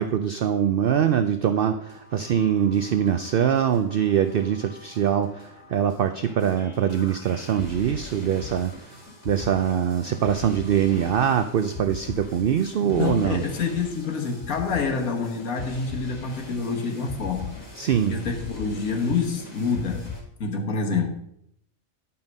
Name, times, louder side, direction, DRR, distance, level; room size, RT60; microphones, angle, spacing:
voice 1, 0.0-9.0 9.3-13.4 17.8-18.1, right 9 dB, 60° right, 0.6 m, -23 dB
sound 1, 1.8-20.2, left 4 dB, 70° left, 3.2 m, -41 dB
voice 2, 12.8-20.1 20.4-21.1, left 5 dB, 90° left, 1.7 m, -27 dB
10.5 x 5.7 x 5.3 m
omnidirectional pair, 1.4 m